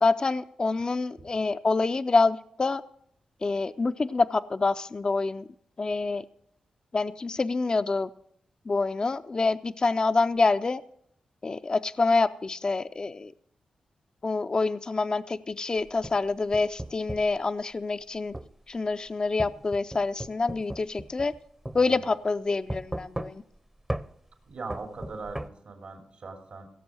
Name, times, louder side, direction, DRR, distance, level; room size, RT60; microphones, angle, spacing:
voice 1, 0.0-2.8 3.4-5.5 5.8-6.2 6.9-8.1 8.7-10.8 11.4-13.3 14.2-18.4 18.7-21.3 21.7-23.4, left 3 dB, 40° left, 11 dB, 0.4 m, -26 dB
sound 1, 15.8-17.4 18.3-18.5 19.4-21.4 21.7-21.8 22.7-23.6 23.9-24.1 24.7-25.5, right 1 dB, 15° right, 0.7 m, -36 dB
voice 2, 24.5-26.7, right 3 dB, 75° right, 3 dB, 2.8 m, -40 dB
16.5 x 7.1 x 6.2 m, 0.70 s
cardioid pair, 55°, 2 cm